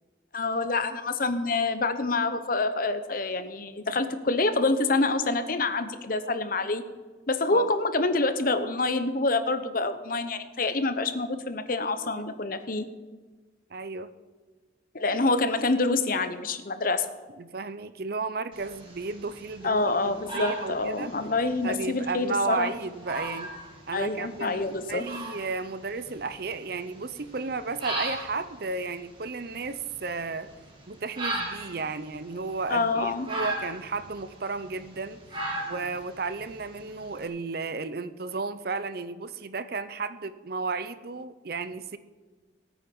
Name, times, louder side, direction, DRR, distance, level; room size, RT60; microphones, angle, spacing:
voice 1, 0.3-6.8 7.3-12.9 14.9-17.0 19.6-22.7 23.9-25.0 32.7-33.2, left 3 dB, 50° left, 10 dB, 1.0 m, -26 dB
voice 2, 13.7-14.1 17.4-21.1 21.6-23.5 23.9-30.5 30.9-35.2 35.7-42.0, right 3 dB, 55° right, 13 dB, 0.7 m, -33 dB
sound 1, 18.5-37.2, right 2 dB, 30° right, 2.7 m, -39 dB
18.5 x 9.1 x 5.5 m, 1.3 s
head